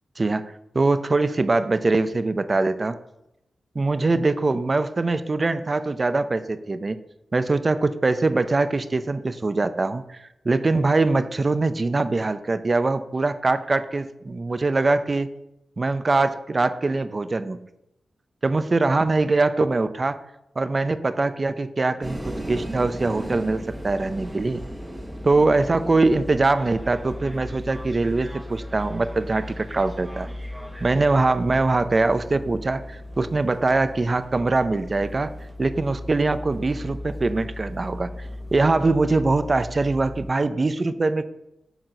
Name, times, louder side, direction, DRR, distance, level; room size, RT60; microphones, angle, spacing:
voice 1, 0.7-3.0 3.7-7.0 7.3-10.2 10.4-15.3 15.8-17.6 18.4-20.2 20.6-24.6 25.2-30.3 30.8-35.3 35.6-41.3, right 3 dB, 35° right, 12 dB, 0.5 m, -22 dB
sound 1, 22.0-40.3, equal, 15° right, 1.1 m, -36 dB
8.0 x 4.5 x 6.4 m, 0.85 s
wide cardioid pair, 90°, 0 cm